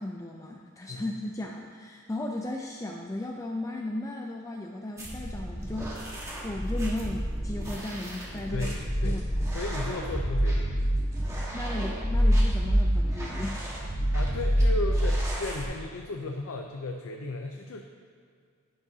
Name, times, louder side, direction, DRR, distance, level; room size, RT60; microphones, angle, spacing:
voice 1, 0.0-6.0 6.4-8.7 9.0-9.5 11.1-13.7, left 1 dB, 15° left, 1 dB, 0.4 m, -36 dB
sound 1, 5.0-15.6, equal, 15° right, 1.4 m, -27 dB
voice 2, 8.5-9.2 9.5-10.8 14.1-17.8, left 2 dB, 70° left, 3 dB, 0.6 m, -35 dB
10.5 x 10.5 x 2.8 m, 2.1 s
head